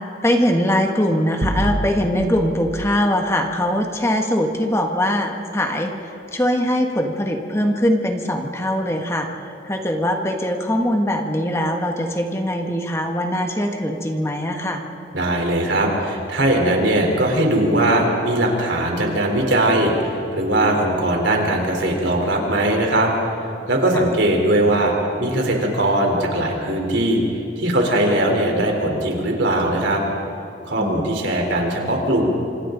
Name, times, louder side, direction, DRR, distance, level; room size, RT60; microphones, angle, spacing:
voice 1, 0.2-5.9 6.3-9.3 9.6-14.8 23.9-24.1 30.8-31.1, equal, 15° left, 3 dB, 1.5 m, -21 dB
sound 1, 1.4-2.4, right 1 dB, 60° right, 3.8 m, -24 dB
voice 2, 15.1-23.1 23.7-24.9 25.2-27.2 27.6-30.0 30.7-32.3, right 1 dB, 85° right, 1 dB, 3.9 m, -20 dB
26.5 x 26.0 x 4.0 m, 2.9 s
head